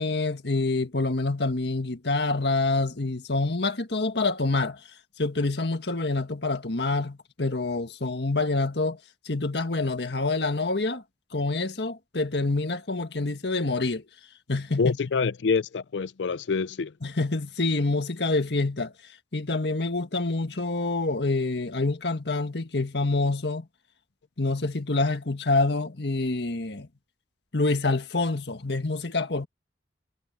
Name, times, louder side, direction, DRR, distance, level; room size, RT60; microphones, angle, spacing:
voice 1, 0.0-4.8 5.2-9.0 9.2-11.0 11.3-14.0 14.5-15.0 17.0-18.9 19.3-23.7 24.4-26.9 27.5-29.5, left 3 dB, 70° left, 1.7 m, -27 dB
voice 2, 14.8-16.9, left 5 dB, 85° left, 0.5 m, -26 dB
head